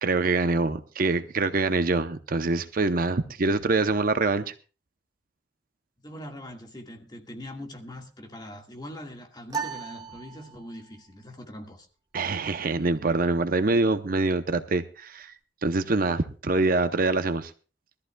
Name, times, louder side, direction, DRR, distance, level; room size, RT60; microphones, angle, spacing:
voice 1, 0.0-4.5 12.1-15.3 15.6-17.5, right 3 dB, 50° right, 0.7 m, -25 dB
voice 2, 6.0-11.9, left 1 dB, 25° left, 1.7 m, -42 dB
sound 1, 9.5-11.0, right 5 dB, 20° right, 1.2 m, -36 dB
22.0 x 13.5 x 2.3 m
head